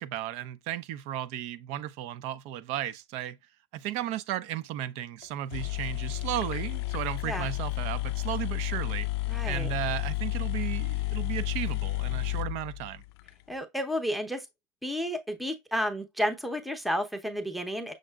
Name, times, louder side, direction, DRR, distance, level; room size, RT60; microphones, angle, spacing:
voice 1, 0.0-3.4 3.7-9.1 9.4-13.0, right 12 dB, 50° right, 0.5 m, -34 dB
sound 1, 5.2-5.3 5.5-13.3, left 17 dB, 65° left, 0.4 m, -31 dB
voice 2, 9.3-9.7 13.5-14.5 14.8-17.9, equal, ahead, 0.7 m, -31 dB
6.5 x 3.6 x 2.3 m
hypercardioid pair, 115°, 14 cm